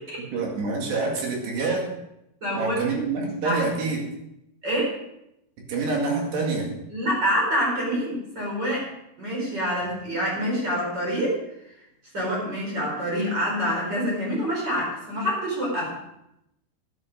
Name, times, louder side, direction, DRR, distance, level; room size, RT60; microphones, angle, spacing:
voice 1, 0.2-1.9 2.5-4.0 5.7-6.7, right 4 dB, 60° right, 0 dB, 3.8 m, -26 dB
voice 2, 2.4-2.8 3.4-3.6 4.6-5.0 6.9-8.9 9.2-11.4 12.1-16.0, equal, 20° right, -3 dB, 4.6 m, -26 dB
11.5 x 11.0 x 5.0 m, 0.83 s
omnidirectional pair, 5.9 m